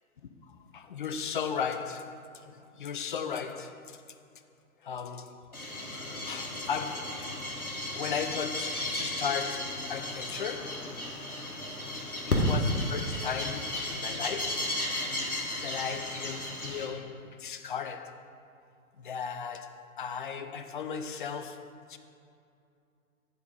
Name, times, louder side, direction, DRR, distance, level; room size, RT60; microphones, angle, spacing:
voice 1, 0.4-4.0 4.8-5.5 6.0-7.3 7.9-10.9 12.3-14.8 15.6-18.2 19.0-22.0, left 6 dB, 40° left, 9 dB, 0.4 m, -36 dB
sound 1, 5.5-16.9, left 1 dB, 90° left, 1.4 m, -33 dB
10.0 x 4.0 x 5.2 m, 2.5 s
figure-of-eight pair, 120°, 42 cm